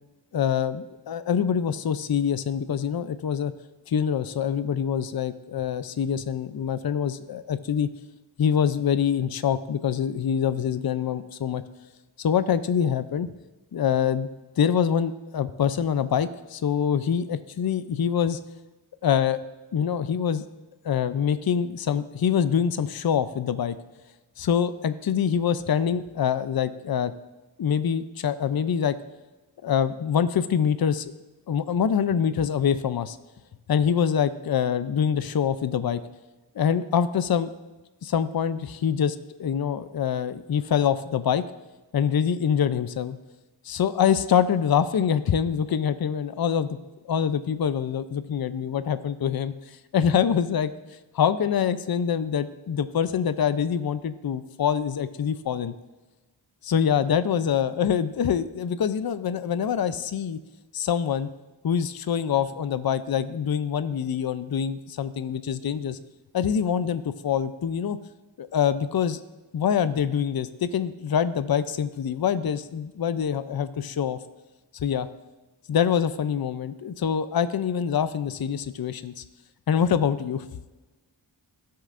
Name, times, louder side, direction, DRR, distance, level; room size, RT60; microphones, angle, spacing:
voice 1, 0.3-3.5 3.9-7.9 8.4-11.6 12.2-13.3 13.7-14.3 14.6-18.4 19.0-19.4 19.7-20.4 20.8-23.8 24.4-27.1 27.6-28.9 29.6-31.1 31.5-33.2 33.7-36.0 36.6-37.5 38.0-41.4 41.9-43.2 43.6-46.7 47.0-49.5 49.9-50.7 51.1-55.7 56.6-60.4 60.7-61.3 61.6-66.0 66.3-68.0 68.4-69.2 69.5-74.2 74.7-75.1 75.7-79.2 79.7-80.5, left 8 dB, 50° left, 12 dB, 0.5 m, -25 dB
16.5 x 6.6 x 2.5 m, 1.2 s
wide cardioid pair, 60°, 47 cm